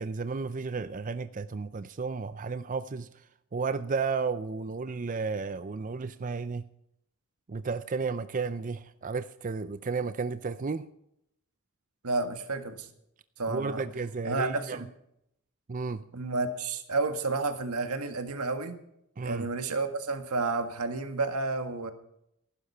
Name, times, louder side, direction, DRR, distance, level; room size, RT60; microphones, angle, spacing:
voice 1, 0.0-3.1 3.5-6.6 7.5-10.9 13.5-14.8 15.7-16.0 19.2-19.5, right 4 dB, 35° right, 0.5 m, -33 dB
voice 2, 12.0-12.9 13.4-13.9 14.2-14.9 16.1-18.8 19.2-21.9, right 3 dB, 90° right, 1.7 m, -31 dB
15.0 x 12.0 x 5.6 m
head